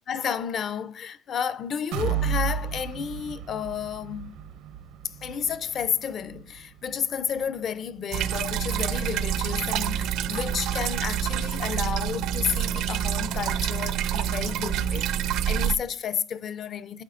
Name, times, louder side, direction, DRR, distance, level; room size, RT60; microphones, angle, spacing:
voice 1, 0.1-4.4 5.0-17.0, left 7 dB, 45° left, 0.5 m, -31 dB
sound 1, 1.9-9.7 10.1-10.2 10.6-10.7, right 7 dB, 90° right, 0.9 m, -34 dB
sound 2, 8.1-15.8, right 10 dB, 70° right, 0.5 m, -27 dB
11.0 x 4.8 x 2.5 m
cardioid pair, 125°, 0 cm